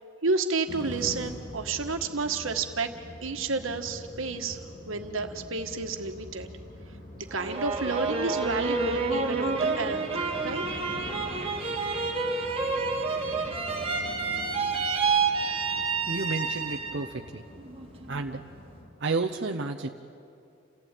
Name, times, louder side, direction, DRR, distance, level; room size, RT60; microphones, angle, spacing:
voice 1, 0.2-2.9 3.2-4.6 4.9-6.5 7.3-10.6, right 3 dB, 80° right, 6 dB, 1.6 m, -30 dB
sound 1, 0.7-18.9, left 1 dB, 40° left, 3.5 m, -44 dB
sound 2, 7.3-17.1 17.5-18.2, right 4 dB, 30° right, 2.0 m, -29 dB
voice 2, 16.1-17.4 18.1-18.4 19.0-19.9, right 3 dB, 60° right, 1 dB, 0.8 m, -31 dB
28.5 x 15.5 x 9.2 m, 2.5 s
head